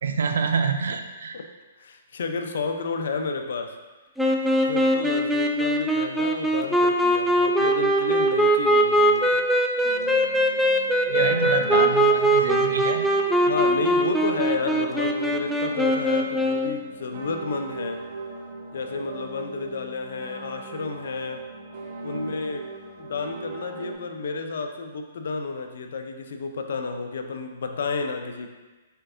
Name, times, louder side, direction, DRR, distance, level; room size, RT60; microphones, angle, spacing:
voice 1, 0.0-1.4 11.0-13.1 22.1-22.3, right 5 dB, 80° right, 7 dB, 0.4 m, -27 dB
voice 2, 1.8-3.8 4.7-9.4 13.5-18.0 18.7-21.4 22.0-22.7 23.0-28.5, left 4 dB, 75° left, 5 dB, 0.5 m, -31 dB
sound 1, 4.2-16.8, right 1 dB, ahead, 0.3 m, -21 dB
sound 2, 9.8-23.9, right 3 dB, 50° right, 0.9 m, -39 dB
4.4 x 4.4 x 2.6 m, 1.2 s
hypercardioid pair, 145°, 0 cm